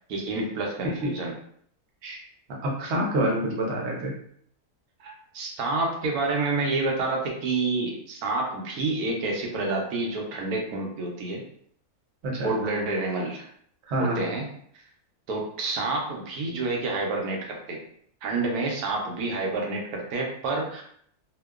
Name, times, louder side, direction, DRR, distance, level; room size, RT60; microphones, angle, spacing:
voice 1, 0.1-1.3 5.3-11.4 12.4-13.5 14.0-14.5 15.3-17.8 18.2-20.8, right 3 dB, 80° right, 0 dB, 1.1 m, -28 dB
voice 2, 2.6-4.1 5.0-5.1 12.2-12.5 13.9-14.2, right 1 dB, 55° right, -2 dB, 0.8 m, -27 dB
2.9 x 2.1 x 2.3 m, 0.65 s
omnidirectional pair, 1.6 m